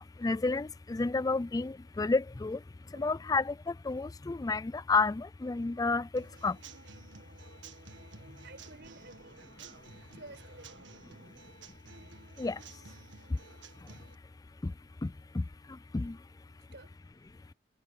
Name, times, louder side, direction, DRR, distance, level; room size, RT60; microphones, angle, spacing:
voice 1, 0.0-2.6 2.9-6.6 12.4-12.6 14.6-14.7 15.0-15.4 15.9-16.2, left 3 dB, 20° left, 0.3 m, -31 dB
Human voice / Acoustic guitar / Drum, 6.2-14.1, right 4 dB, 90° right, 1.7 m, -53 dB
voice 2, 8.4-9.8 10.1-11.2 16.7-17.0, right 2 dB, 65° right, 5.2 m, -53 dB
head